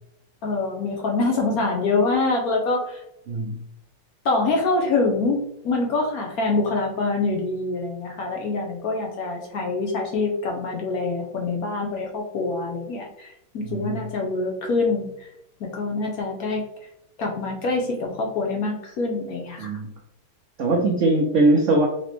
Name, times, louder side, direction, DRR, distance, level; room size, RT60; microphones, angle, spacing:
voice 1, 0.4-3.0 4.2-15.3 15.6-16.6 17.2-19.7, left 3 dB, 65° left, 1 dB, 1.0 m, -25 dB
voice 2, 3.3-3.6 13.6-14.0 19.6-19.9 20.6-21.9, right 2 dB, 90° right, 1 dB, 0.6 m, -21 dB
4.0 x 3.0 x 3.2 m, 0.81 s
omnidirectional pair, 2.1 m